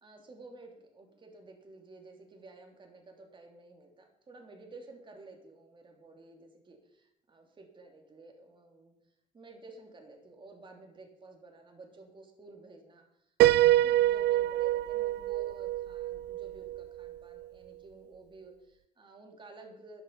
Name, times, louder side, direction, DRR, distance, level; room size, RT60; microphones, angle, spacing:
voice 1, 0.0-8.9 9.3-20.0, right 2 dB, 30° right, 2 dB, 3.0 m, -52 dB
Piano, 13.4-17.1, right 15 dB, 80° right, 0.4 m, -26 dB
11.0 x 10.5 x 6.9 m, 0.79 s
cardioid pair, 110°, 17 cm